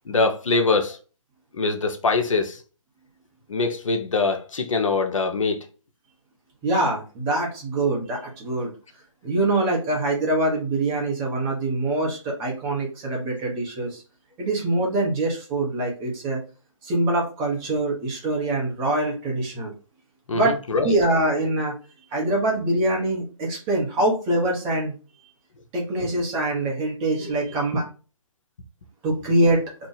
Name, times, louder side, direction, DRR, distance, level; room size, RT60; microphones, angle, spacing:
voice 1, 0.1-1.0 1.5-2.6 3.5-5.7 20.3-21.0, left 3 dB, 70° left, 0.7 m, -23 dB
voice 2, 6.6-8.7 9.2-14.0 14.4-16.4 16.8-19.7 20.3-20.6 20.8-21.7 22.1-24.9 25.7-27.8 29.0-29.6, right 2 dB, 15° right, 0.8 m, -24 dB
2.7 x 2.4 x 3.9 m
figure-of-eight pair, 150°, 17 cm